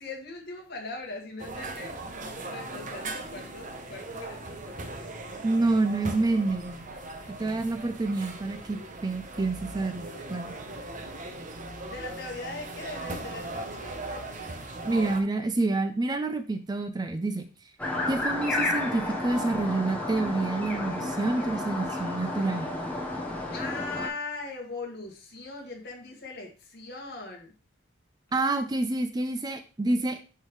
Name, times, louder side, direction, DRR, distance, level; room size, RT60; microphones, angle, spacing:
voice 1, 0.0-4.9 7.2-7.3 11.8-14.0 23.5-27.5, left 3 dB, 50° left, 0 dB, 1.9 m, -40 dB
sound 1, 1.4-15.2, right 2 dB, 40° right, 0.9 m, -39 dB
voice 2, 5.4-6.8 7.4-10.5 14.8-17.5 18.1-22.7 28.3-30.2, right 2 dB, 20° right, 9 dB, 0.4 m, -28 dB
sound 2, 17.8-24.1, left 2 dB, 5° left, 1.0 m, -31 dB
10.5 x 3.7 x 3.2 m, 0.33 s
head